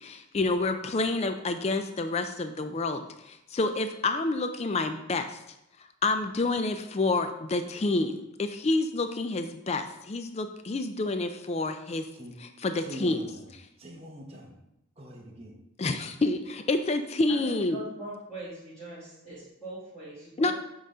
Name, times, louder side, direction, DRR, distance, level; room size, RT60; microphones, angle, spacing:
voice 1, 0.3-3.0 3.5-5.2 6.0-9.8 10.1-12.0 12.6-13.2 15.8-17.8 20.4-20.5, left 2 dB, 30° left, 8 dB, 0.4 m, -28 dB
voice 2, 12.1-13.5 13.8-14.6 15.0-15.7, equal, 25° right, -1 dB, 1.1 m, -44 dB
voice 3, 17.3-20.5, right 1 dB, 5° left, -14 dB, 2.4 m, -41 dB
7.6 x 3.9 x 4.9 m, 0.86 s
head